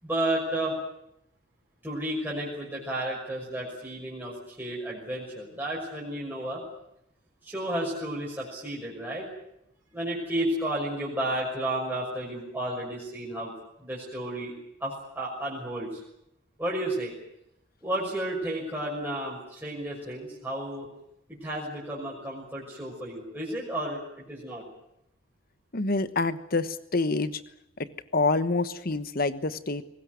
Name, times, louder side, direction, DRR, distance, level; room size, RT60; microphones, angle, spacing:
voice 1, 0.0-0.8 1.8-6.6 7.4-9.3 9.9-13.5 13.8-14.5 14.8-16.0 16.6-17.1 17.8-20.9 21.4-24.0 24.3-24.6, right 1 dB, 10° right, -5 dB, 6.0 m, -32 dB
voice 2, 25.7-27.4 28.1-29.8, left 3 dB, 45° left, 12 dB, 1.2 m, -27 dB
22.5 x 19.5 x 9.4 m, 0.83 s
head